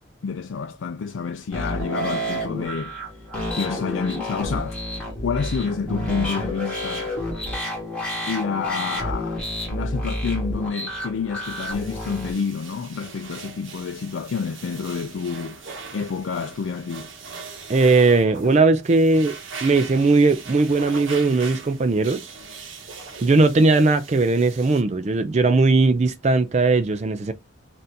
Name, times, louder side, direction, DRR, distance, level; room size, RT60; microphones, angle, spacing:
voice 1, 0.2-3.0 3.5-4.8 5.2-7.1 8.3-9.4 9.7-15.6 15.9-17.1, left 5 dB, 75° left, 0.4 m, -28 dB
sound 1, 1.5-12.3, equal, 5° left, 1.7 m, -29 dB
sound 2, 11.4-24.8, right 5 dB, 80° right, 0.9 m, -41 dB
sound 3, 15.6-16.1 18.1-18.8 20.7-21.4 22.8-23.5, right 3 dB, 60° right, 1.2 m, -43 dB
voice 2, 17.7-22.2 23.2-27.3, right 3 dB, 35° right, 0.4 m, -18 dB
4.2 x 2.6 x 3.4 m
head